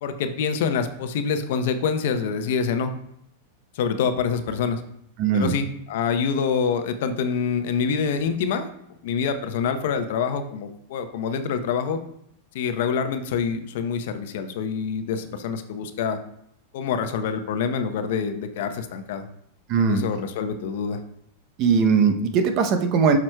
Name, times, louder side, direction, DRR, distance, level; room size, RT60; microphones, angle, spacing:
voice 1, 0.0-2.9 3.7-4.8 5.3-8.7 9.0-12.0 12.5-16.2 16.7-19.3 19.8-21.0, left 6 dB, 65° left, 8 dB, 0.7 m, -26 dB
voice 2, 5.2-5.5 19.7-20.0 21.6-23.2, right 5 dB, 45° right, 7 dB, 0.7 m, -20 dB
7.4 x 6.0 x 2.2 m, 0.74 s
hypercardioid pair, 120°, 0 cm